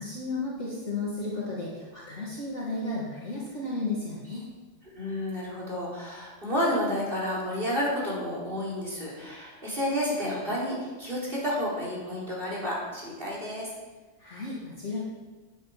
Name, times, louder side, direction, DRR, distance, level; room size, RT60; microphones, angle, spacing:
voice 1, 0.0-4.5 14.2-15.0, left 2 dB, 50° left, -5 dB, 2.6 m, -33 dB
voice 2, 4.9-13.7, equal, 35° right, -5 dB, 4.1 m, -30 dB
13.0 x 9.9 x 5.2 m, 1.3 s
omnidirectional pair, 1.5 m